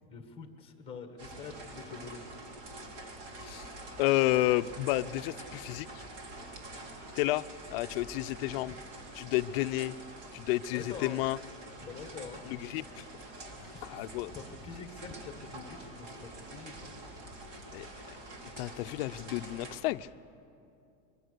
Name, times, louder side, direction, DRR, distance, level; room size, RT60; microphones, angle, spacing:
voice 1, 0.1-2.2 8.5-8.8 10.7-11.2 11.8-12.4 13.7-17.0, left 5 dB, 15° left, 6 dB, 1.5 m, -45 dB
sound 1, 1.2-19.8, right 2 dB, 65° right, 3.7 m, -46 dB
voice 2, 4.0-5.9 7.2-7.4 7.7-8.7 9.2-9.9 10.3-11.4 12.5-13.0 13.6-14.3 17.7-17.9 18.6-20.1, left 17 dB, 50° left, 12 dB, 0.5 m, -31 dB
24.0 x 23.5 x 6.7 m, 2.6 s
supercardioid pair, 170°, 38 cm